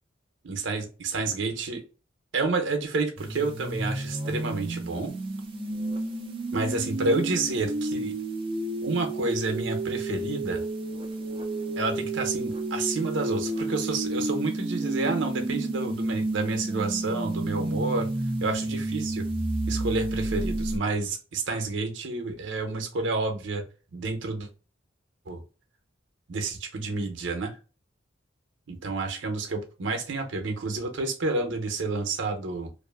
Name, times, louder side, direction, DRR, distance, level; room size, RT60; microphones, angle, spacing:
voice 1, 0.4-1.8 2.3-5.1 6.5-8.1 8.8-10.6 11.8-18.1 18.4-19.3 19.7-23.6 23.9-24.5 25.3-25.4 26.3-27.6 28.7-32.7, right 3 dB, 70° right, 4 dB, 0.6 m, -29 dB
sound 1, 3.2-20.8, right 2 dB, 30° right, 0.4 m, -31 dB
2.5 x 2.4 x 2.3 m, 0.34 s
head